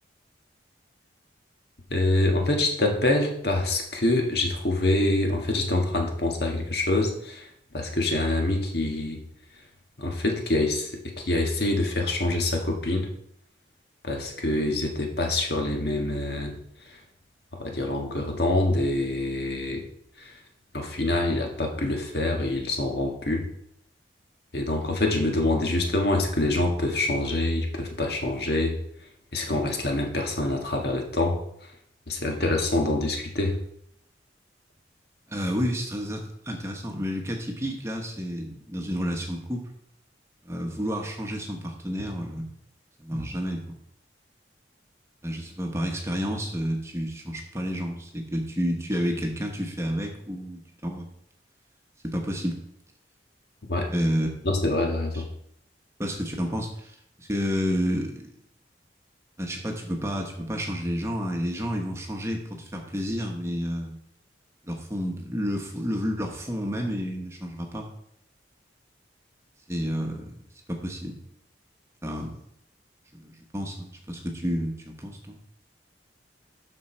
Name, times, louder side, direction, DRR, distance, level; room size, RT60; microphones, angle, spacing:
voice 1, 1.9-7.5 7.7-9.2 10.0-10.9 11.2-13.1 14.0-16.5 17.5-19.8 20.2-20.3 20.7-23.5 24.5-28.7 29.3-31.4 32.1-33.6 53.7-53.9 54.4-55.2, left 2 dB, 60° left, 2 dB, 1.5 m, -25 dB
voice 2, 35.3-39.6 40.4-42.5 43.0-43.8 45.2-51.1 52.0-52.6 53.9-54.5 55.1-55.2 56.0-58.3 59.4-64.0 64.6-67.9 69.7-70.4 70.7-71.2 72.0-72.4 73.1-75.4, equal, 15° right, 2 dB, 1.1 m, -30 dB
12.5 x 4.5 x 4.4 m, 0.72 s
head